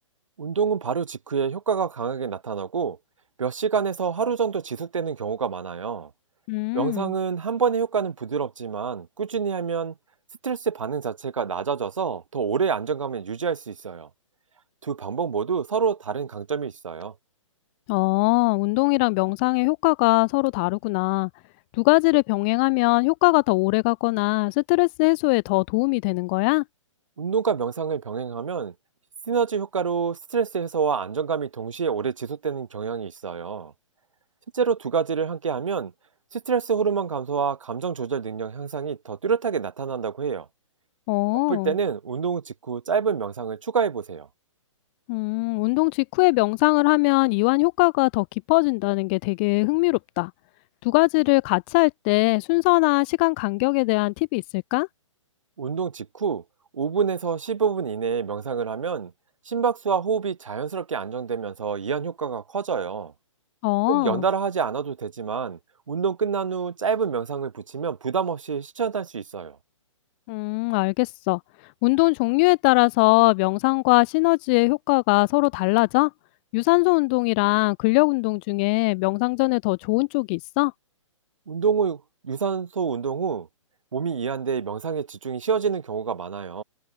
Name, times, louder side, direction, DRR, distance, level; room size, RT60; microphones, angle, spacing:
voice 1, 0.4-3.0 3.4-6.1 6.7-9.9 10.4-14.1 14.8-17.1 27.2-28.7 29.3-33.7 34.5-35.9 36.3-40.5 41.5-44.3 55.6-56.4 56.7-59.1 59.5-63.1 63.9-65.6 65.9-69.6 81.5-83.5 83.9-86.6, right 6 dB, 75° right, 0.5 m, -27 dB
voice 2, 6.5-7.1 17.9-21.3 21.7-26.6 41.1-41.7 45.1-50.3 50.8-54.9 63.6-64.2 70.3-71.4 71.8-76.1 76.5-80.7, left 29 dB, 20° left, 0.3 m, -21 dB
figure-of-eight pair, 125°, 17 cm